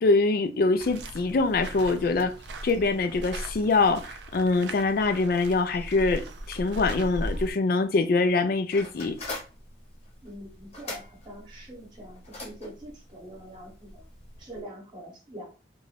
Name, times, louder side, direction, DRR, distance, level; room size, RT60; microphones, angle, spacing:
voice 1, 0.0-2.3 2.6-9.2, left 3 dB, 50° left, 0.3 m, -24 dB
sound 1, 0.8-7.5, right 1 dB, 70° right, 0.4 m, -38 dB
sound 2, 8.7-14.6, left 2 dB, 35° left, 0.9 m, -43 dB
voice 2, 10.2-14.1 14.4-15.5, right 1 dB, 25° right, 1.0 m, -44 dB
2.5 x 2.2 x 3.2 m
head